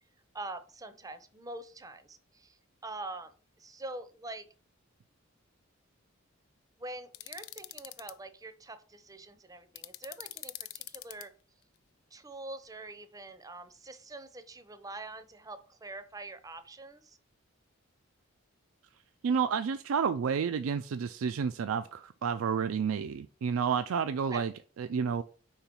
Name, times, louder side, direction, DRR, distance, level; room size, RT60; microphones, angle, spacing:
voice 1, 0.3-4.5 6.8-11.3 12.1-17.2 24.3-24.4, right 2 dB, 15° right, 0.6 m, -45 dB
sound 1, 7.1-8.1 9.8-11.2, left 16 dB, 85° left, 0.4 m, -43 dB
voice 2, 19.2-25.2, right 6 dB, 80° right, 0.4 m, -30 dB
4.8 x 4.4 x 5.3 m
head